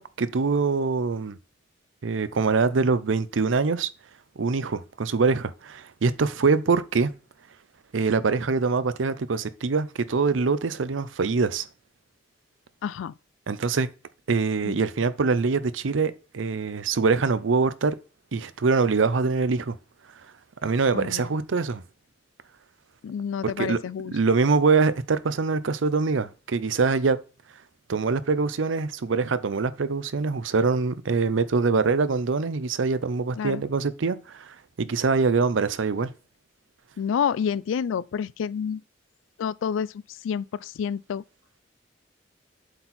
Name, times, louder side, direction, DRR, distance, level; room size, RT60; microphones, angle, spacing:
voice 1, 0.0-1.4 2.0-3.9 4.4-7.1 7.9-11.7 13.5-13.9 14.3-18.0 18.3-19.8 20.6-21.8 23.4-23.8 24.1-27.2 27.9-36.1, right 4 dB, 90° right, 0.6 m, -24 dB
voice 2, 12.8-13.1 14.6-14.8 20.9-21.3 23.0-24.2 33.4-33.6 37.0-38.8 39.4-41.2, left 7 dB, 90° left, 0.3 m, -29 dB
7.9 x 4.4 x 4.2 m
head